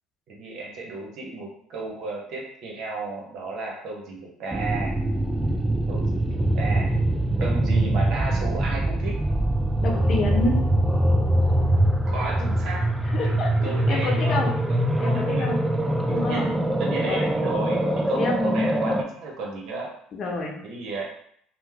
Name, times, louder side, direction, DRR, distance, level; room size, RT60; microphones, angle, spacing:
voice 1, 0.3-4.9 5.9-6.9 7.4-9.2 12.1-12.9 13.2-13.3 13.6-15.5 16.1-16.5 16.8-19.9 20.6-21.0, right 3 dB, 65° right, -1 dB, 0.9 m, -33 dB
sound 1, 4.5-19.0, right 1 dB, 10° right, 0.3 m, -23 dB
voice 2, 9.8-10.7 13.1-14.5 15.0-15.6 16.1-16.5 17.0-17.3 18.2-18.4 20.1-20.6, left 2 dB, 50° left, 0 dB, 0.8 m, -28 dB
2.9 x 2.0 x 3.4 m, 0.68 s
supercardioid pair, 90°, 0 cm